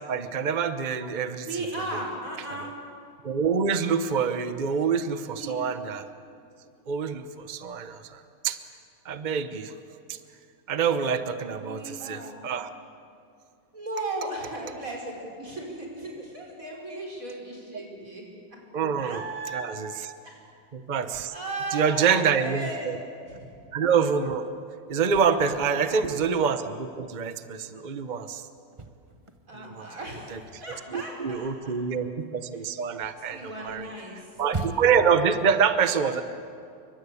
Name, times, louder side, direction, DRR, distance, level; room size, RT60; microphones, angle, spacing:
voice 1, 0.1-1.5 3.2-6.1 6.9-8.6 9.0-9.7 10.1-10.2 10.7-12.7 18.7-19.2 19.5-19.9 20.7-21.3 21.7-23.0 23.7-24.5 24.9-28.4 29.5-29.9 30.3-30.4 30.9-33.9 34.4-36.2, right 6 dB, 55° right, 10 dB, 0.5 m, -26 dB
voice 2, 1.4-2.7 5.3-5.5 11.5-12.4 13.7-18.2 19.0-19.7 20.2-20.4 21.3-23.5 25.5-26.1 29.5-31.8 33.3-34.3 34.5-34.7, right 2 dB, 40° right, -1 dB, 5.8 m, -36 dB
sound 1, 28.6-29.8 30.1-35.2, right 3 dB, 20° right, 0.9 m, -39 dB
29.0 x 24.0 x 8.4 m, 2.5 s
omnidirectional pair, 2.3 m